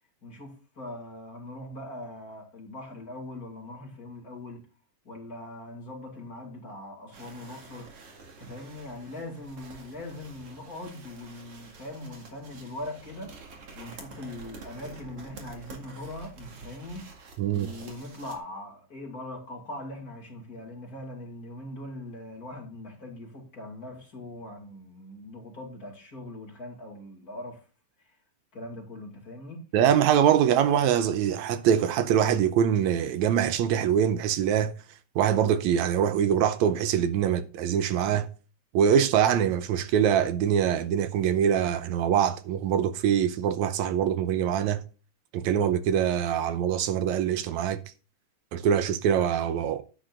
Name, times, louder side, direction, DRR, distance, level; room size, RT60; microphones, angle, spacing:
voice 1, 0.2-4.6 5.0-8.1 8.4-27.6 28.5-29.6, left 1 dB, 30° left, 2.8 m, -41 dB
sound 1, 7.1-18.4, right 4 dB, 55° right, 2.8 m, -48 dB
voice 2, 29.7-34.7 35.2-38.3 38.7-44.8 45.3-47.8 48.5-49.8, right 9 dB, 80° right, 2.0 m, -24 dB
10.0 x 9.8 x 2.6 m
omnidirectional pair, 3.3 m